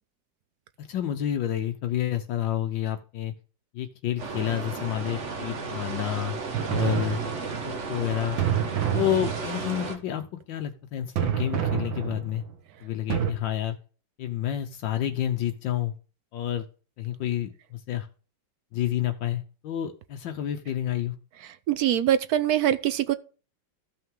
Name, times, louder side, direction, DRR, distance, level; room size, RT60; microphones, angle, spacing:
voice 1, 0.8-3.3 3.7-6.4 6.7-7.2 7.7-8.4 8.9-12.4 12.8-13.8 14.2-15.9 16.3-16.7 17.0-18.1 18.7-21.2, left 11 dB, 80° left, 1.5 m, -29 dB
sound 1, 4.2-10.0, right 4 dB, 40° right, 1.4 m, -34 dB
sound 2, 6.5-7.7 8.4-9.8 11.2-12.5 13.1-13.3, right 9 dB, 90° right, 2.0 m, -28 dB
voice 2, 21.7-23.1, right 11 dB, 70° right, 0.9 m, -23 dB
14.0 x 5.7 x 3.7 m
omnidirectional pair, 2.1 m